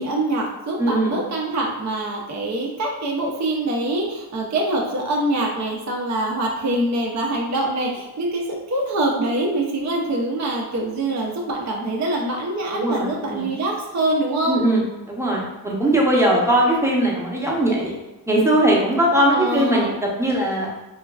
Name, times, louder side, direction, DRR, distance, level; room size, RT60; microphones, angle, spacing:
voice 1, 0.0-14.6 19.3-19.9, right 1 dB, 45° right, -1 dB, 0.5 m, -24 dB
voice 2, 0.8-1.1 12.7-13.5 14.5-17.9 18.3-19.9 20.2-20.7, right 1 dB, 5° right, -3 dB, 0.6 m, -20 dB
3.1 x 2.3 x 2.2 m, 1.1 s
wide cardioid pair, 70°, 40 cm